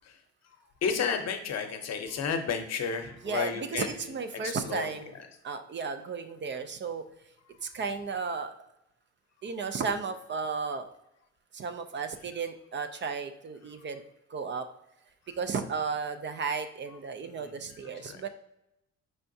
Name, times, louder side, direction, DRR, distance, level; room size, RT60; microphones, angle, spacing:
voice 1, 0.8-3.9 4.4-4.9 15.3-15.4 17.3-17.5 17.8-18.2, left 6 dB, 60° left, 5 dB, 0.7 m, -32 dB
voice 2, 3.2-5.1 5.4-7.0 7.6-8.5 9.4-10.9 11.5-14.0 14.3-14.7 15.4-18.3, right 5 dB, 40° right, 9 dB, 0.4 m, -34 dB
4.5 x 3.3 x 2.6 m, 0.86 s
cardioid pair, 90°, 30 cm